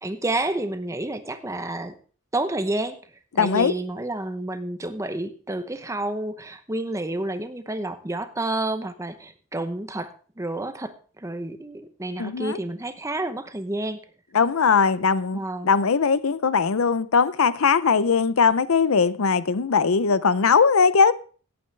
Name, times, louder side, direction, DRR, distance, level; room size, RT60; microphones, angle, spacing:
voice 1, 0.0-1.9 2.3-3.0 3.3-10.1 10.4-14.0 15.3-15.7, right 2 dB, 15° right, 0.8 m, -29 dB
voice 2, 3.4-3.7 12.2-12.6 14.3-21.1, left 5 dB, 75° left, 0.6 m, -20 dB
17.0 x 8.6 x 3.3 m
head